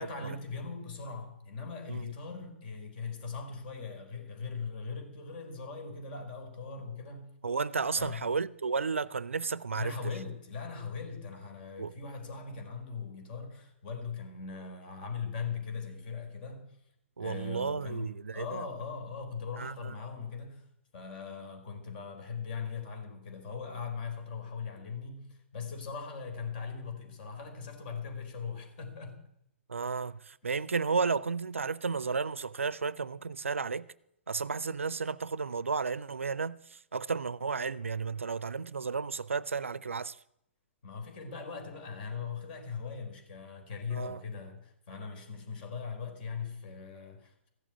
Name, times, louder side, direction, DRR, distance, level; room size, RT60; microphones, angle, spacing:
voice 1, 0.0-7.3 8.0-8.3 9.8-16.7 17.2-20.6 20.9-29.2 40.8-47.5, left 5 dB, 45° left, 4.1 m, -40 dB
voice 2, 7.4-10.0 11.8-11.9 17.2-18.6 19.6-20.0 29.7-33.9 34.3-40.2 43.9-44.2, right 5 dB, 80° right, 0.5 m, -33 dB
15.0 x 7.3 x 9.1 m
figure-of-eight pair, 115°, 7 cm